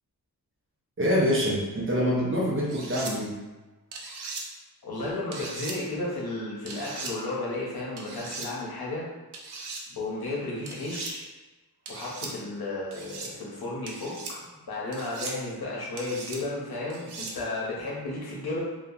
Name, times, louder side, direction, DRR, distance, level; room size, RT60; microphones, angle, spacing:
voice 1, 1.0-3.4, equal, 35° right, -5 dB, 0.5 m, -25 dB
sound 1, 2.7-3.1 3.9-4.4 5.3-5.8 6.7-7.1 8.0-8.5 9.3-9.8 10.7-11.1 11.9-12.3 12.9-13.3 13.9-14.3 14.9-15.4 16.0-16.4 16.9-17.3, right 4 dB, 80° right, 0.5 m, -38 dB
voice 2, 4.8-9.1 9.9-11.2 11.9-18.6, left 2 dB, 70° left, -5 dB, 0.8 m, -33 dB
2.7 x 2.2 x 2.3 m, 1.1 s
wide cardioid pair, 155°, 39 cm